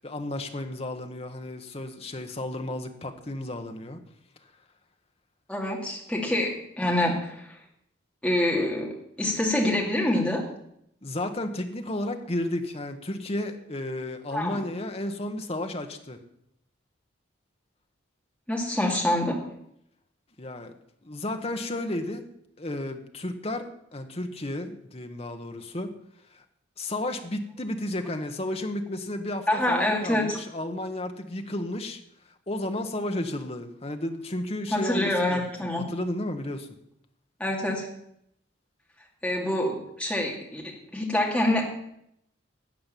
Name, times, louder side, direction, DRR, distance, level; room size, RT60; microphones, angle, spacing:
voice 1, 0.0-4.0 11.0-16.2 20.4-20.7 21.0-22.2 22.6-25.9 26.3-26.4 26.8-32.0 32.5-35.5 35.8-36.7, left 1 dB, 30° left, 6 dB, 1.2 m, -33 dB
voice 2, 5.5-7.6 8.2-8.9 9.2-10.4 14.3-14.6 18.5-19.4 29.5-30.4 34.7-35.8 37.4-37.9 39.2-41.6, left 1 dB, 5° left, -1 dB, 2.4 m, -26 dB
12.5 x 7.8 x 7.5 m, 0.75 s
head